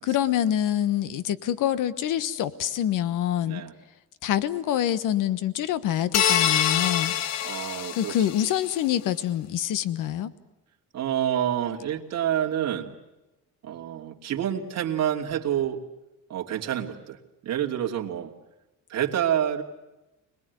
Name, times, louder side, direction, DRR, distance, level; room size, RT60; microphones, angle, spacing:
voice 1, 0.0-3.6 4.2-7.1 7.9-10.3, left 11 dB, 75° left, 15 dB, 1.3 m, -26 dB
sound 1, 6.1-8.6, left 10 dB, 55° left, 1.0 m, -25 dB
voice 2, 7.4-8.2 10.9-12.9 13.6-15.8 16.3-18.3 18.9-19.6, right 10 dB, 55° right, 0 dB, 2.8 m, -28 dB
26.0 x 20.5 x 9.5 m, 1.0 s
cardioid pair, 150°, 32 cm